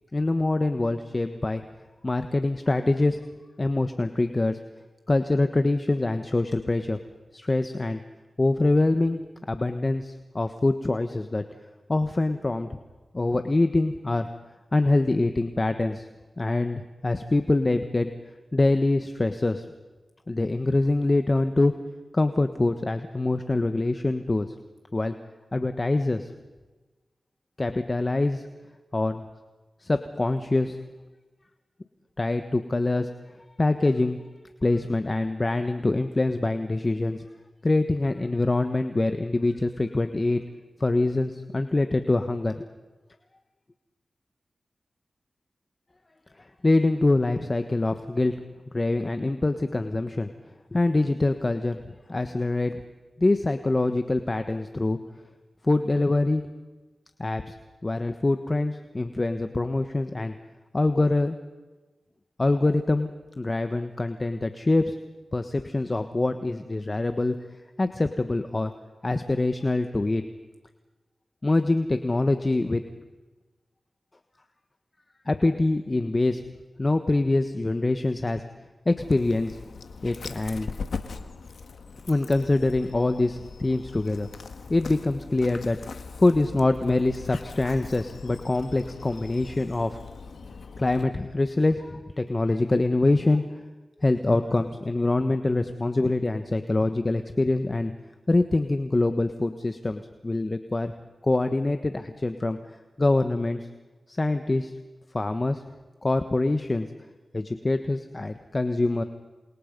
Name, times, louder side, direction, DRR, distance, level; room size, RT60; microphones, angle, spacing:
voice 1, 0.1-1.6 2.0-3.2 3.6-4.6 5.1-7.0 7.3-8.0 8.4-9.2 9.5-11.4 11.9-12.7 13.1-14.3 14.7-16.1 16.4-18.1 18.5-19.7 20.3-21.7 22.1-24.5 24.9-25.1 25.5-26.3 27.6-28.5 28.9-29.2 29.8-30.8 32.2-33.1 33.6-34.2 34.6-37.2 37.6-40.4 40.8-42.7 46.4-48.3 48.7-50.3 50.7-51.8 52.1-52.8 53.2-55.0 55.6-56.4 57.2-57.5 57.8-60.3 60.7-61.4 62.4-63.1 63.4-65.0 65.3-67.4 67.8-68.7 69.0-70.2 71.4-72.8 75.3-76.4 76.8-78.4 78.8-79.6 80.0-80.7 82.1-84.3 84.7-85.8 86.2-90.0 90.8-93.6 94.0-97.9 98.3-100.9 101.2-102.6 103.0-103.7 104.1-104.7 105.1-105.6 106.0-106.9 107.3-109.0, left 2 dB, 40° left, 8 dB, 1.4 m, -24 dB
Dog, 79.0-91.0, left 4 dB, 85° left, 1.6 m, -40 dB
28.5 x 26.5 x 5.4 m, 1.2 s
cardioid pair, 45°, 0 cm